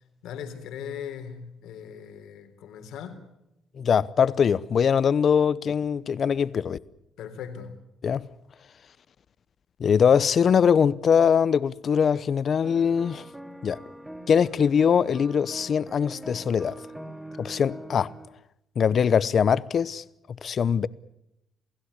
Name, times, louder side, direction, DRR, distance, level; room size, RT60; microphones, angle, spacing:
voice 1, 0.2-3.2 7.2-7.7, left 8 dB, 85° left, 3.7 m, -39 dB
voice 2, 3.8-6.8 8.0-8.2 9.8-13.2 13.6-13.8 14.3-16.8 17.4-18.1 18.8-20.0 20.4-20.9, left 7 dB, 55° left, 0.9 m, -22 dB
sound 1, 12.6-18.3, right 1 dB, 5° right, 2.7 m, -43 dB
28.5 x 16.5 x 9.8 m
cardioid pair, 90°, 0 cm